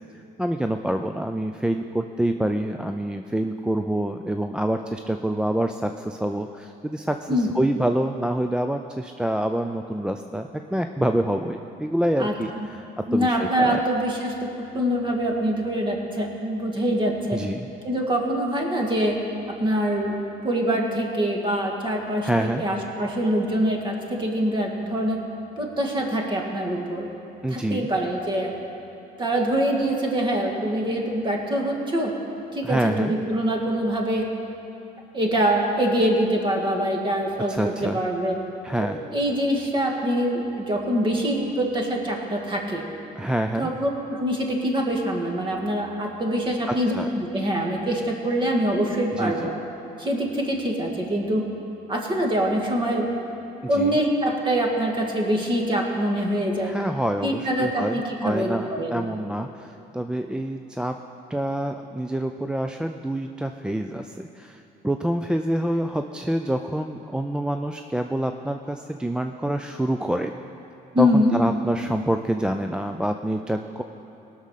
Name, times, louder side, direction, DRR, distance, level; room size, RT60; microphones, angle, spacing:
voice 1, 0.4-13.8 17.3-17.7 22.2-22.6 27.4-27.9 32.6-33.1 37.5-38.0 38.6-39.0 43.2-43.7 46.7-47.1 49.2-49.5 53.7-54.0 56.6-61.0 61.3-70.3 71.0-73.8, right 1 dB, 5° right, 5 dB, 0.3 m, -27 dB
voice 2, 12.2-12.7 13.1-14.5 14.7-17.4 17.8-19.2 19.5-20.2 20.4-25.2 25.6-27.1 27.5-28.6 29.2-32.1 32.5-34.3 35.1-38.4 38.8-38.9 39.1-42.8 43.6-49.5 50.0-51.5 51.9-53.1 53.7-56.7 57.2-59.1 70.9-71.4, equal, 30° right, 1 dB, 1.9 m, -24 dB
18.5 x 6.3 x 5.7 m, 2.8 s
cardioid pair, 110°, 17 cm